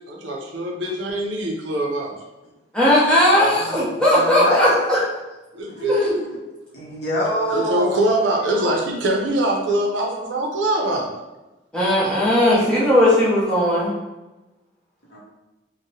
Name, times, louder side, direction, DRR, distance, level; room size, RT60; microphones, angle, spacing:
voice 1, 0.1-2.1 5.5-6.0 7.5-11.1, right 1 dB, 80° right, 0 dB, 0.5 m, -23 dB
voice 2, 2.7-5.0 5.9-6.2 11.7-13.9, left 1 dB, 5° left, -8 dB, 0.6 m, -17 dB
voice 3, 3.5-4.8 5.7-6.1 6.7-8.1 15.1-15.2, equal, 55° left, -5 dB, 0.7 m, -27 dB
2.8 x 2.0 x 2.7 m, 1.1 s
head